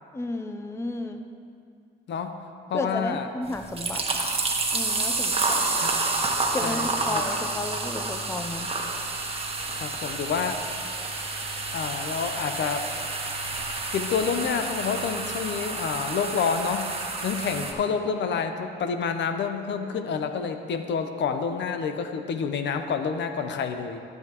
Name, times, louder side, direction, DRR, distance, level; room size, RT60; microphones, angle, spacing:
voice 1, 0.1-1.2 2.7-4.3 4.7-5.7 6.5-8.7, left 2 dB, 15° left, 6 dB, 0.5 m, -33 dB
voice 2, 2.7-3.3 5.8-6.1 6.6-7.2 9.8-10.6 11.7-12.9 13.9-16.9 17.2-24.0, left 6 dB, 65° left, 7 dB, 0.7 m, -28 dB
sound 1, 3.5-17.7, right 3 dB, 30° right, 1.3 m, -29 dB
14.0 x 7.9 x 3.0 m, 2.4 s
cardioid pair, 90°, 20 cm